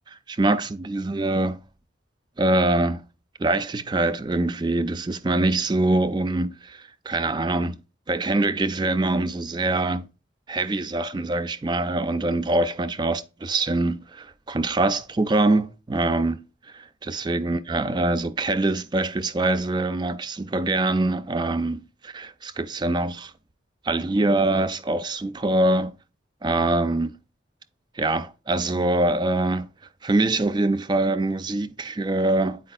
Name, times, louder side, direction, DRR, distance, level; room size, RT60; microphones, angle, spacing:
voice 1, 0.1-1.6 2.4-3.0 3.4-7.8 8.1-10.1 10.5-16.4 16.7-23.3 23.8-25.9 26.4-27.1 28.0-29.7 30.0-32.6, right 2 dB, 25° right, 0.4 m, -24 dB
8.6 x 5.0 x 2.3 m
head